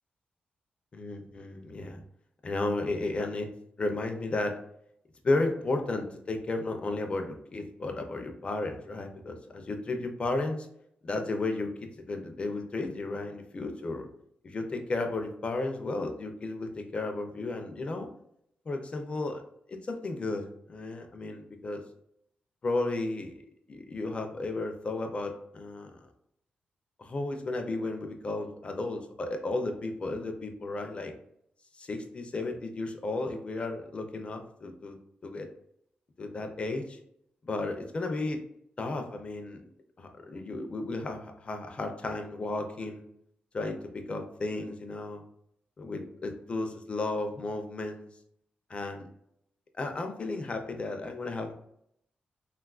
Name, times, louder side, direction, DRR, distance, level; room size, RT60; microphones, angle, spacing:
voice 1, 0.9-2.0 2.4-3.5 3.8-4.6 5.2-10.7 11.0-14.1 14.4-18.1 18.7-19.4 19.7-21.8 22.6-23.3 23.7-26.0 27.0-31.1 31.8-35.0 35.2-35.5 36.2-37.0 37.4-38.4 38.8-39.6 40.0-43.0 43.5-45.2 45.8-48.1 48.7-49.1 49.8-51.5, left 2 dB, 35° left, 5 dB, 0.5 m, -33 dB
3.5 x 2.3 x 2.3 m, 0.72 s
wide cardioid pair, 135°, 3 cm